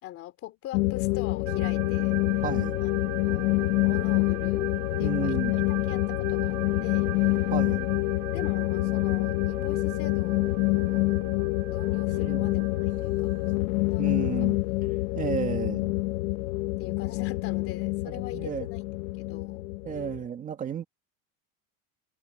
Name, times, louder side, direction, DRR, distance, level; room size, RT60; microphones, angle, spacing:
voice 1, 0.0-2.2 2.8-2.9 3.2-4.7 5.0-7.1 7.6-8.0 8.3-11.2 11.7-12.6 13.0-14.3 15.4-15.6 16.8-18.8 19.2-19.6, left 14 dB, 35° left, 2.7 m, -42 dB
sound 1, 0.7-20.2, left 21 dB, 80° left, 1.3 m, -27 dB
sound 2, 1.5-13.6, right 23 dB, 45° right, 4.7 m, -41 dB
voice 2, 2.4-2.8 5.0-5.5 7.5-7.8 12.2-12.5 14.0-14.6 15.1-15.9 18.1-18.7 19.8-20.8, right 8 dB, 20° right, 2.0 m, -33 dB
cardioid pair, 175°, 39 cm